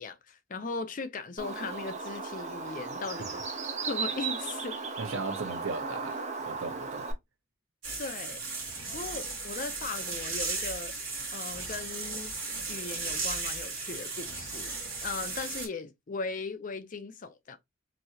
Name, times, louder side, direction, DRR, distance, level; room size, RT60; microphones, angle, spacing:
voice 1, 0.0-3.4 3.9-4.8 8.0-8.4 8.9-10.9 11.3-12.3 12.7-14.7 15.0-17.6, left 4 dB, 40° left, 0.5 m, -38 dB
Bird, 1.4-7.1, right 4 dB, 35° right, 0.6 m, -36 dB
voice 2, 5.0-7.1, right 4 dB, 85° right, 0.9 m, -37 dB
sound 1, 7.8-15.7, right 3 dB, 65° right, 1.4 m, -36 dB
3.0 x 2.7 x 2.7 m
head